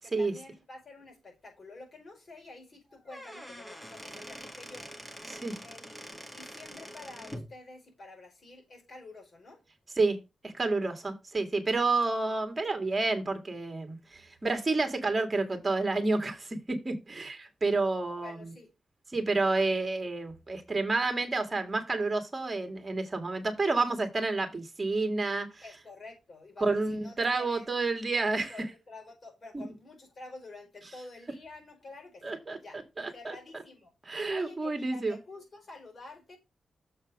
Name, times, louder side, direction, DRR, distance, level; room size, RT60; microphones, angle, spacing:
voice 1, 0.0-4.9 5.6-9.6 18.2-18.7 25.6-27.7 28.5-32.9 33.1-33.9 34.3-36.4, left 2 dB, 45° left, 5.1 m, -49 dB
Squeak / Wood, 2.9-7.5, equal, 5° left, 1.9 m, -45 dB
voice 2, 5.3-5.6 10.0-10.2 10.4-18.5 19.1-25.6 26.6-28.5 29.5-29.6 32.2-33.3 34.1-35.2, right 3 dB, 30° right, 2.1 m, -30 dB
7.3 x 4.3 x 6.1 m
cardioid pair, 85°, 0 cm